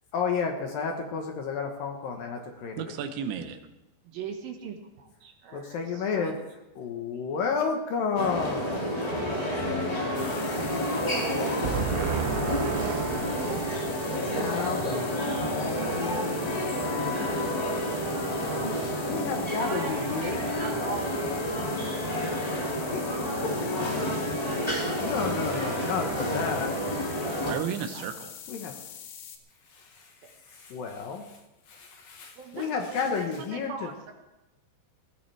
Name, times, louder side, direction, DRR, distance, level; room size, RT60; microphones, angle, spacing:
voice 1, 0.1-2.9 5.5-6.3 6.8-12.6 14.1-18.5 19.1-20.4 22.6-23.0 23.4-23.6 24.9-26.8 28.5-28.7 29.7-31.4 31.7-33.9, left 5 dB, 65° left, 3 dB, 2.5 m, -33 dB
voice 2, 2.8-3.6 11.6-14.6 27.4-28.3, right 7 dB, 90° right, 8 dB, 3.3 m, -32 dB
voice 3, 4.0-6.4 7.3-7.4 19.6-21.2 27.9-28.0 30.2-30.3 32.4-34.1, right 6 dB, 65° right, 3 dB, 2.9 m, -40 dB
sound 1, 8.1-27.5, equal, 15° left, 1.2 m, -30 dB
sound 2, 10.2-29.4, left 8 dB, 85° left, 3.7 m, -44 dB
20.0 x 16.0 x 3.4 m, 0.99 s
omnidirectional pair, 5.0 m